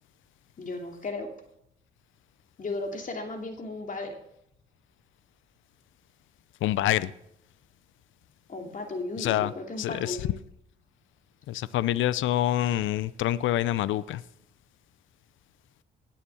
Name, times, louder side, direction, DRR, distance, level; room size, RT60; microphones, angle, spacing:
voice 1, 0.6-1.3 2.6-4.2 8.5-10.3, left 3 dB, 40° left, 2.7 m, -35 dB
voice 2, 6.6-7.1 9.2-9.5 9.8-10.3 11.5-14.2, left 13 dB, 80° left, 0.6 m, -26 dB
18.5 x 7.3 x 7.1 m
cardioid pair, 90°, 20 cm